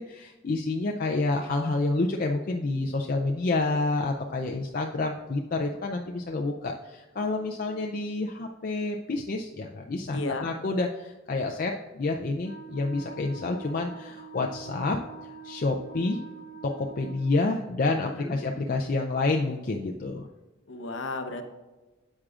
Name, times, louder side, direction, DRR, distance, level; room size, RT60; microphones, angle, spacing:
voice 1, 0.0-15.0 15.4-16.2 16.6-20.3, left 3 dB, 40° left, 1 dB, 0.4 m, -28 dB
voice 2, 10.1-10.5 18.1-18.4 20.7-21.5, left 2 dB, 60° left, 6 dB, 0.8 m, -33 dB
Wind instrument woodwind instrument, 12.4-17.6, right 5 dB, 60° right, 2.1 m, -45 dB
9.7 x 7.4 x 2.4 m, 1.2 s
head